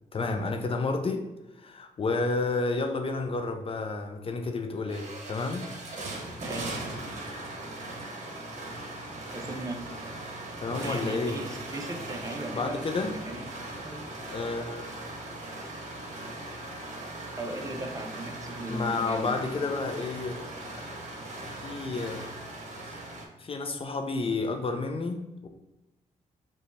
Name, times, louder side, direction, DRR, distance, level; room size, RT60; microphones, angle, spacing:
voice 1, 0.1-1.3 1.6-5.7 10.6-11.4 12.5-13.1 14.3-14.9 18.7-20.5 21.6-22.3 22.9-23.0 23.4-25.5, left 3 dB, 40° left, 5 dB, 0.5 m, -30 dB
sound 1, 4.3-4.4 4.7-23.3, right 2 dB, 55° right, 0.9 m, -39 dB
voice 2, 6.4-6.7 9.3-9.9 10.8-13.5 13.8-14.0 17.4-19.7, right 1 dB, 25° right, 2 dB, 0.7 m, -37 dB
4.8 x 2.3 x 3.1 m, 0.98 s
cardioid pair, 65°, 15 cm